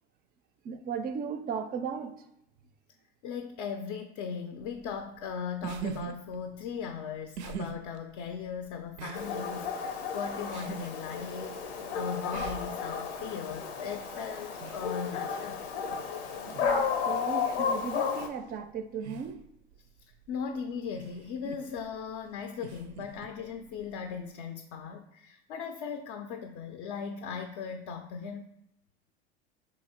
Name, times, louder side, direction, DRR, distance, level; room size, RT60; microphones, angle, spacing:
voice 1, 0.6-2.2 16.6-19.4, right 6 dB, 30° right, 9 dB, 0.4 m, -36 dB
voice 2, 3.2-15.6 20.3-28.5, left 6 dB, 50° left, 6 dB, 0.4 m, -38 dB
sound 1, 4.6-24.3, right 6 dB, 85° right, 0.5 m, -46 dB
Dog, 9.1-18.3, left 6 dB, 85° left, 0.7 m, -33 dB
2.9 x 2.7 x 4.2 m, 0.79 s
hypercardioid pair, 95°, 32 cm